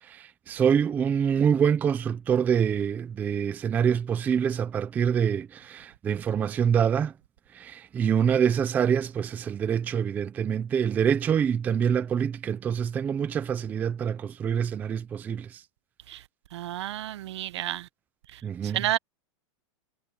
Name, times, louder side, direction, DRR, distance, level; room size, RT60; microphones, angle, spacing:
voice 1, 0.0-7.1 7.5-15.6 18.4-18.9, right 7 dB, 10° right, 0.5 m, -26 dB
voice 2, 16.5-17.8 18.7-19.0, right 13 dB, 60° right, 1.0 m, -30 dB
supercardioid pair, 170°, 16 cm